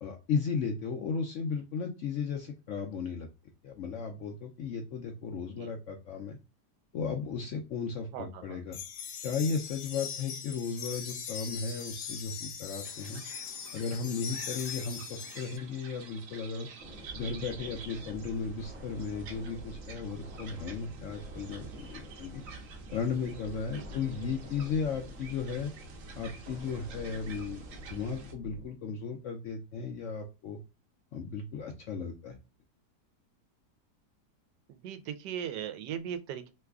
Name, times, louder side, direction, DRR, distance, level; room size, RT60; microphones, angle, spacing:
voice 1, 0.0-3.3 3.6-6.4 6.9-8.8 9.2-13.2 13.7-16.7 17.1-22.4 22.9-25.7 26.2-27.6 27.9-30.6 31.1-32.4, left 5 dB, 70° left, 0.7 m, -35 dB
voice 2, 8.1-8.6 23.7-24.0 34.7-36.5, right 9 dB, 85° right, 1.2 m, -39 dB
sound 1, 8.7-15.6, left 7 dB, 90° left, 1.3 m, -41 dB
sound 2, 12.7-28.3, right 5 dB, 60° right, 1.0 m, -50 dB
sound 3, 16.8-28.7, right 1 dB, 35° right, 1.0 m, -46 dB
3.1 x 2.2 x 3.5 m
omnidirectional pair, 1.8 m